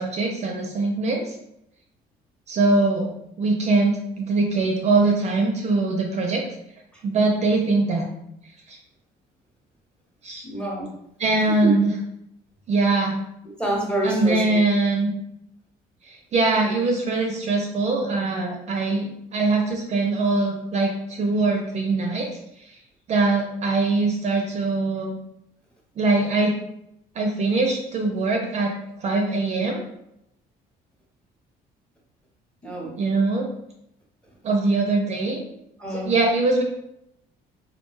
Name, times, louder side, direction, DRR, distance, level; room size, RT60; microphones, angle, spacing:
voice 1, 0.0-1.3 2.5-3.1 3.4-6.4 7.0-8.1 8.7-8.8 10.2-10.4 11.2-11.9 12.7-13.2 14.0-15.1 16.0-22.4 22.6-22.8 23.1-25.1 26.0-26.5 27.1-29.8 33.0-33.5 34.4-35.4 36.0-36.6, right 3 dB, 40° right, 1 dB, 0.4 m, -22 dB
voice 2, 10.4-10.9 11.6-11.7 13.6-14.6 32.6-33.0 35.8-36.1, right 1 dB, 5° left, -3 dB, 0.8 m, -27 dB
2.3 x 2.2 x 3.0 m, 0.81 s
cardioid pair, 110°, 17 cm